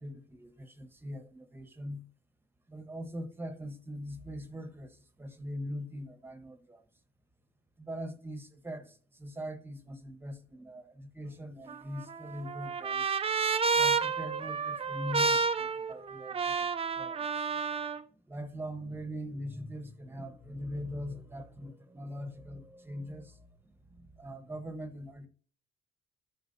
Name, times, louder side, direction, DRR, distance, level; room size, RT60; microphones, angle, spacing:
voice 1, 0.0-2.0 2.7-6.8 7.8-13.1 13.7-16.7 17.0-17.6 18.2-25.3, equal, 10° right, 1.2 m, -42 dB
Trumpet, 11.7-18.0, right 5 dB, 30° right, 0.5 m, -30 dB
12.5 x 4.4 x 2.7 m
cardioid pair, 95°, 20 cm